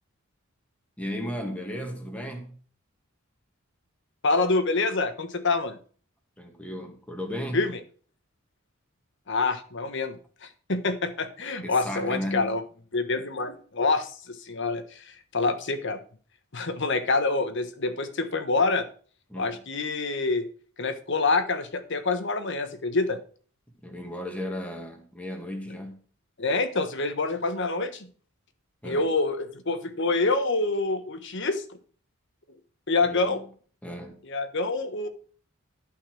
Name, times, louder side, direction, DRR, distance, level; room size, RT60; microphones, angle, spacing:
voice 1, 1.0-2.5 6.4-7.6 11.6-12.6 19.3-19.6 23.8-26.0 28.8-29.1 33.0-33.4 33.8-34.2, equal, 5° left, 2.0 m, -35 dB
voice 2, 4.2-5.8 7.5-7.8 9.3-12.6 12.9-15.0 15.3-16.0 16.5-18.9 19.4-20.5 20.8-23.2 26.4-28.1 28.8-31.6 32.9-33.4 34.3-35.1, left 3 dB, 60° left, 1.3 m, -26 dB
11.5 x 5.6 x 6.2 m
head